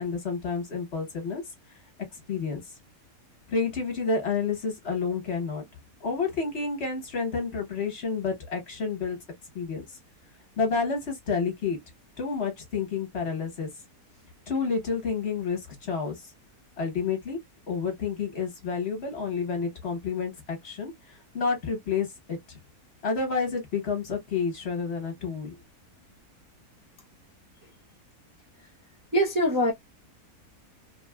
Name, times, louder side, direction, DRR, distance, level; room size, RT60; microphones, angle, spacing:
voice 1, 0.0-1.4 2.3-2.6 3.5-5.6 6.0-9.2 9.5-9.8 10.6-11.8 12.2-13.7 14.5-16.2 16.8-17.4 17.7-20.9 21.3-22.4 23.0-25.5, left 5 dB, 45° left, 1.2 m, -29 dB
voice 2, 29.1-29.7, equal, 30° right, 0.3 m, -22 dB
3.4 x 2.3 x 2.2 m
omnidirectional pair, 1.7 m